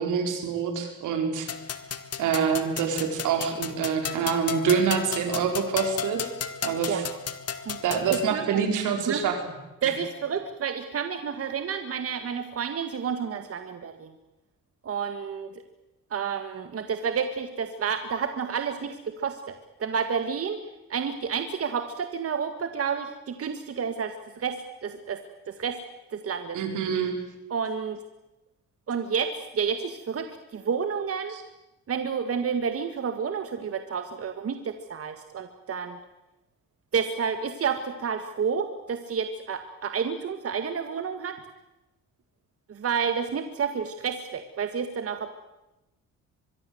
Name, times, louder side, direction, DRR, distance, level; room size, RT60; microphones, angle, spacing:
voice 1, 0.0-1.5 2.2-6.3 6.6-7.0 7.8-9.4 9.8-9.9 26.5-27.2 31.3-31.4, right 6 dB, 85° right, 5 dB, 5.0 m, -26 dB
sound 1, 1.5-8.3, left 7 dB, 55° left, 2.0 m, -34 dB
voice 2, 8.1-8.6 9.1-9.2 9.8-14.1 14.8-15.6 16.1-20.6 20.9-25.2 25.5-25.8 26.1-26.6 27.5-28.0 28.9-31.4 31.9-36.0 36.9-41.3 42.7-45.3, right 6 dB, 50° right, 8 dB, 1.9 m, -30 dB
24.0 x 22.0 x 7.9 m, 1.0 s
cardioid pair, 90°, 30 cm